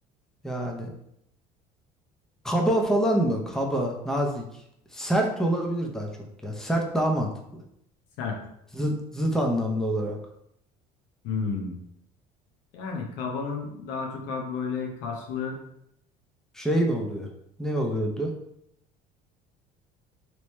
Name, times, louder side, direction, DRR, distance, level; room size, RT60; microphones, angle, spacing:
voice 1, 0.4-0.9 2.4-4.4 4.9-6.1 6.4-7.3 8.7-10.2 16.5-17.3 17.6-18.3, right 1 dB, 5° left, 1 dB, 0.7 m, -26 dB
voice 2, 11.2-11.7 12.7-15.6, left 5 dB, 75° left, 1 dB, 0.8 m, -31 dB
3.0 x 3.0 x 3.2 m, 0.76 s
supercardioid pair, 75°, 19 cm